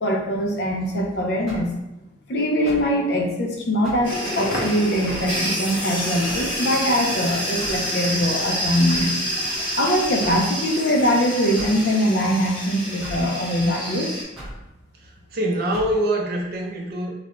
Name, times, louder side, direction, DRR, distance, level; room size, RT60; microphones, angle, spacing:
voice 1, 0.0-1.8 2.3-9.2 9.8-14.2, equal, 65° left, 0 dB, 0.5 m, -22 dB
sound 1, 1.5-1.8 2.7-2.9 3.8-4.1 5.1-5.3 6.3-6.6 7.6-7.9 8.9-9.2 10.2-10.5 11.6-11.8 13.0-13.3 14.4-14.6 15.7-16.0, equal, ahead, 0.7 m, -38 dB
sound 2, 4.0-14.2, equal, 25° left, 1.2 m, -28 dB
Crackle, 4.1-10.3, equal, 80° left, 0.8 m, -39 dB
voice 2, 15.0-17.1, right 1 dB, 55° right, -1 dB, 0.5 m, -25 dB
2.4 x 2.2 x 3.1 m, 0.93 s
head